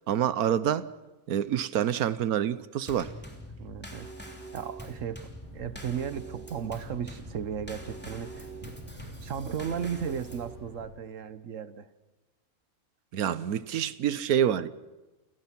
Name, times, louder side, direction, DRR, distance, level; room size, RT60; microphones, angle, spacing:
voice 1, 0.1-0.9 1.3-3.1 13.1-14.7, right 9 dB, 90° right, 16 dB, 1.3 m, -27 dB
Drum kit / Snare drum / Bass drum, 2.9-10.6, right 1 dB, 5° left, 3.1 m, -44 dB
voice 2, 3.6-4.1 4.5-11.9, right 8 dB, 65° right, 14 dB, 1.3 m, -36 dB
sound 1, 5.4-10.8, right 1 dB, 55° left, 8.5 m, -49 dB
29.5 x 17.5 x 6.0 m, 1.1 s
omnidirectional pair, 1.5 m